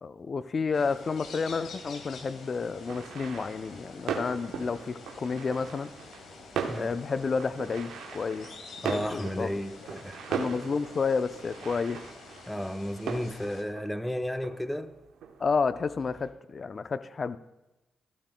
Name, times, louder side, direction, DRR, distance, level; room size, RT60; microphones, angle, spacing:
voice 1, 0.0-5.9 6.8-8.5 8.9-9.5 10.3-12.0 15.4-17.4, left 5 dB, 50° left, 0.6 m, -30 dB
sound 1, 0.7-13.6, left 4 dB, 75° left, 1.6 m, -48 dB
sound 2, 2.9-16.3, right 6 dB, 75° right, 0.9 m, -39 dB
voice 2, 8.8-10.2 12.5-14.9, equal, 5° left, 0.8 m, -33 dB
15.0 x 13.0 x 2.2 m
hypercardioid pair, 40°, 0 cm